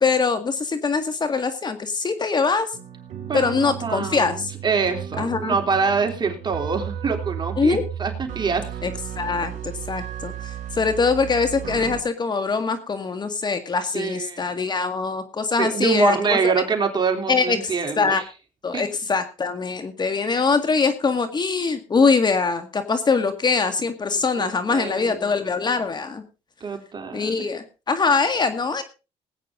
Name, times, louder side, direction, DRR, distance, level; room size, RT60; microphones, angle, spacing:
voice 1, 0.0-2.7 3.3-4.5 5.2-5.5 7.6-7.8 8.8-16.5 17.3-18.2 18.6-26.2 27.1-28.8, left 4 dB, 35° left, 9 dB, 1.8 m, -23 dB
sound 1, 2.7-12.0, right 9 dB, 70° right, 4.4 m, -34 dB
voice 2, 3.3-8.7 13.9-14.6 15.6-18.3 18.7-18.8 24.1-25.3 26.6-27.4, right 5 dB, 35° right, 4 dB, 3.3 m, -25 dB
19.0 x 9.1 x 3.8 m, 0.32 s
cardioid pair, 85°, 13 cm